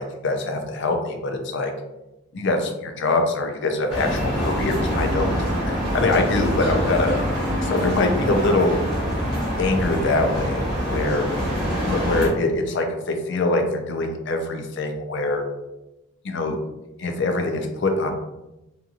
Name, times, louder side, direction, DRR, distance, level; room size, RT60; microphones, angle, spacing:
voice 1, 0.0-1.7 2.3-5.3 5.9-8.8 9.6-11.3 11.8-15.4 16.2-16.6 17.0-18.1, left 2 dB, 55° left, 4 dB, 0.4 m, -23 dB
sound 1, 3.9-12.3, equal, ahead, 1.4 m, -25 dB
2.8 x 2.6 x 2.4 m, 0.96 s
head